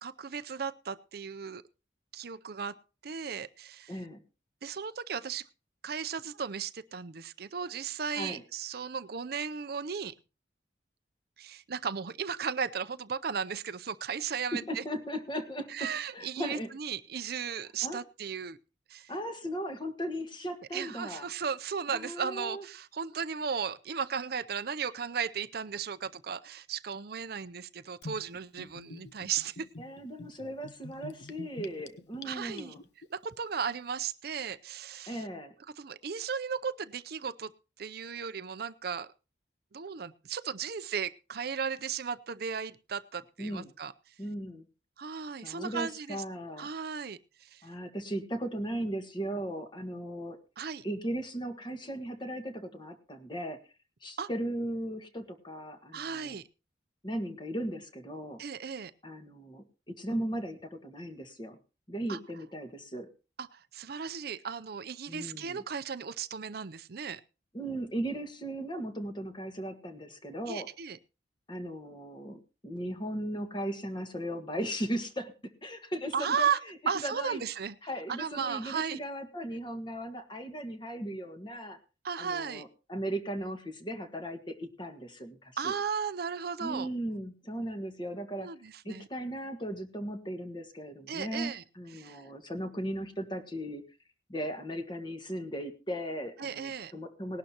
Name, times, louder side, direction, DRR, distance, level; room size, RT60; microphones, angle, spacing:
voice 1, 0.0-1.6 2.1-2.7 3.0-3.9 4.6-5.5 5.8-10.1 11.4-14.8 15.7-18.6 18.9-19.1 20.7-29.7 32.2-32.7 33.1-35.2 35.8-37.5 37.8-39.1 39.7-43.9 45.0-46.2 46.6-47.7 50.6-50.8 54.2-54.3 55.9-56.4 58.4-58.9 62.1-62.2 63.4-67.2 70.5-71.0 76.1-76.6 76.9-77.7 78.1-79.0 82.0-82.6 85.6-86.9 88.4-89.1 91.1-91.6 91.9-92.3 96.4-96.9, right 6 dB, 60° right, 13 dB, 0.6 m, -35 dB
voice 2, 3.9-4.2 8.1-8.4 14.5-16.7 17.8-18.0 19.1-21.3 21.9-22.6 29.8-32.8 35.1-35.5 43.4-43.7 44.2-44.6 45.4-46.7 47.6-50.4 50.8-53.6 54.0-56.4 57.0-58.4 59.0-61.6 61.9-63.1 65.1-65.6 67.5-70.7 71.5-76.5 76.9-77.4 77.8-81.8 82.2-85.7 86.6-88.5 88.8-93.8 94.3-97.4, right 1 dB, 25° left, 7 dB, 1.6 m, -37 dB
Gurgling / Bathtub (filling or washing), 28.0-33.1, left 2 dB, 75° left, 0.9 m, -47 dB
19.0 x 11.5 x 2.9 m, 0.32 s
head